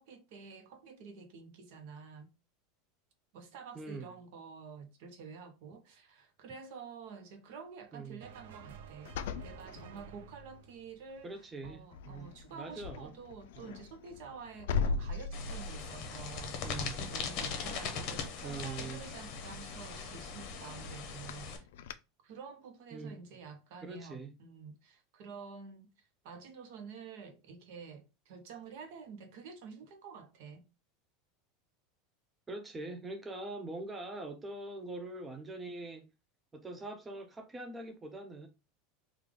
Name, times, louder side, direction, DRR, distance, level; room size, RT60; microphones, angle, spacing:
voice 1, 0.0-2.3 3.3-9.1 9.4-11.3 11.6-21.7 22.2-25.9 26.2-30.7, right 5 dB, 60° right, 0.8 m, -49 dB
voice 2, 3.7-4.2 7.9-8.2 11.2-13.1 13.6-13.7 16.6-17.0 18.4-19.0 22.9-23.2 23.8-24.3 32.5-36.1 36.5-38.5, right 2 dB, 10° right, 0.4 m, -43 dB
sound 1, 8.2-11.7, right 8 dB, 90° right, 0.4 m, -52 dB
sound 2, 9.0-10.6 11.1-11.4 11.6-21.9, left 5 dB, 80° left, 0.3 m, -41 dB
sound 3, 15.3-21.6, left 5 dB, 45° left, 0.8 m, -40 dB
3.3 x 2.3 x 3.5 m
supercardioid pair, 160°, 0 cm